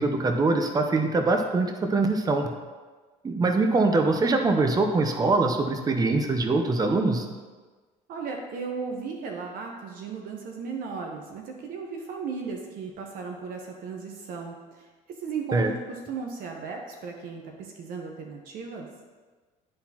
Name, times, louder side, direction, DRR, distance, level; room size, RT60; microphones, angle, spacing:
voice 1, 0.0-2.5 3.2-7.3 15.5-15.7, right 3 dB, 25° right, 5 dB, 0.7 m, -23 dB
voice 2, 8.1-14.9 15.2-18.9, right 5 dB, 60° right, 2 dB, 1.0 m, -36 dB
12.0 x 4.1 x 2.9 m, 1.4 s
supercardioid pair, 100°, 16 cm